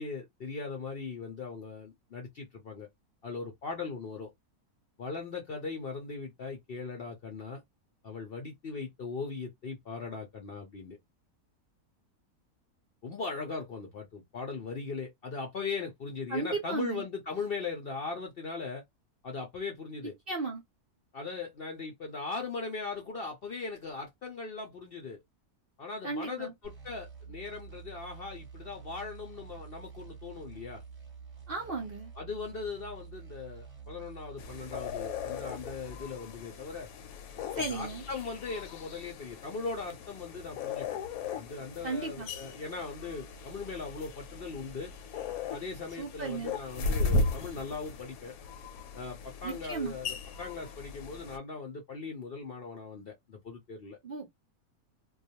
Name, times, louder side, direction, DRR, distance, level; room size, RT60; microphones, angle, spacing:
voice 1, 0.0-2.9 3.2-4.3 5.0-7.6 8.0-11.0 13.0-18.8 19.2-20.1 21.1-25.2 25.8-30.8 32.2-36.9 37.6-41.0 41.4-44.9 45.5-48.3 48.9-54.0, left 4 dB, 60° left, 0.6 m, -39 dB
voice 2, 16.3-17.0 20.3-20.6 26.0-26.5 31.5-32.1 37.5-38.0 41.8-42.3 46.0-46.5 49.4-49.9 54.0-54.3, right 4 dB, 55° right, 0.6 m, -35 dB
sound 1, 26.6-36.1, right 6 dB, 25° right, 0.9 m, -48 dB
sound 2, 34.4-51.4, left 3 dB, 75° left, 1.0 m, -37 dB
2.3 x 2.3 x 2.7 m
omnidirectional pair, 1.6 m